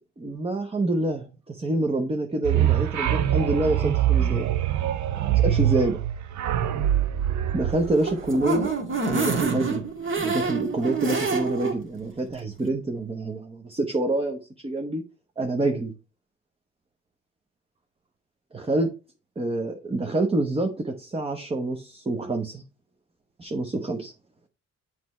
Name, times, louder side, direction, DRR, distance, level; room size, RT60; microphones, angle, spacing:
voice 1, 0.2-4.4 5.3-6.0 7.5-8.7 9.0-9.8 10.1-15.0 15.4-15.9 18.5-18.9 19.4-22.6 23.4-24.1, right 2 dB, 20° right, 0.8 m, -27 dB
sound 1, 2.4-8.7, right 11 dB, 70° right, 0.7 m, -24 dB
sound 2, 7.8-11.8 12.2-12.3 12.6-12.7, right 4 dB, 40° right, 1.6 m, -27 dB
7.6 x 3.2 x 4.2 m
cardioid pair, 90°, 30 cm